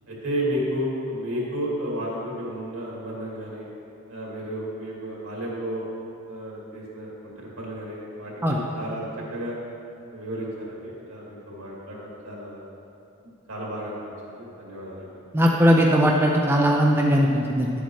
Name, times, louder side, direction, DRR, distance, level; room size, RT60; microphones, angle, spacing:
voice 1, 0.1-3.6 4.1-5.8 6.3-9.6 10.1-12.6 13.5-14.0 14.3-15.2, equal, 75° right, -4 dB, 2.2 m, -32 dB
voice 2, 15.3-17.7, equal, 10° right, -1 dB, 0.4 m, -19 dB
10.5 x 8.2 x 3.2 m, 2.7 s
head